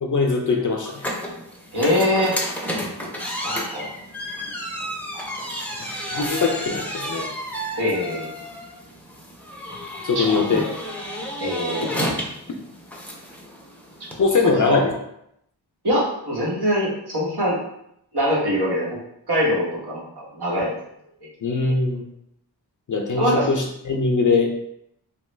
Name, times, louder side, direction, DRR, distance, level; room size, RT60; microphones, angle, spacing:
voice 1, 0.0-1.1 6.1-7.3 10.0-10.6 14.2-14.9 21.4-22.0 22.9-24.6, left 4 dB, 50° left, 2 dB, 0.4 m, -21 dB
sound 1, 0.9-14.2, equal, 5° left, 0.5 m, -31 dB
voice 2, 1.7-2.4 3.4-3.9 5.1-6.2 7.8-8.3 10.1-10.6 11.4-11.9 14.7-14.8 15.8-17.6 18.1-19.0 19.3-20.8 23.2-23.5, equal, 70° right, -5 dB, 1.1 m, -23 dB
3.0 x 2.2 x 3.2 m, 0.77 s
wide cardioid pair, 70°, 40 cm